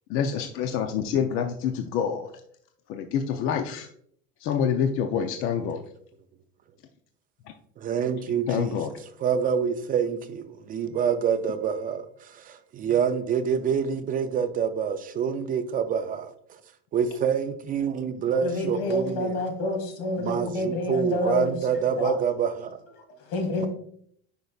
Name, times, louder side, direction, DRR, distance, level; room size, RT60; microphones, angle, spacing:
voice 1, 0.1-2.3 2.9-3.9 4.4-5.8 8.5-9.0, left 7 dB, 45° left, 6 dB, 0.6 m, -27 dB
voice 2, 7.8-8.7 9.2-16.3 16.9-19.4 20.2-22.8, right 7 dB, 30° right, 9 dB, 0.4 m, -26 dB
voice 3, 18.4-22.2 23.1-23.7, left 2 dB, 75° left, 5 dB, 2.1 m, -28 dB
9.4 x 5.3 x 2.4 m, 0.64 s
cardioid pair, 145°, 29 cm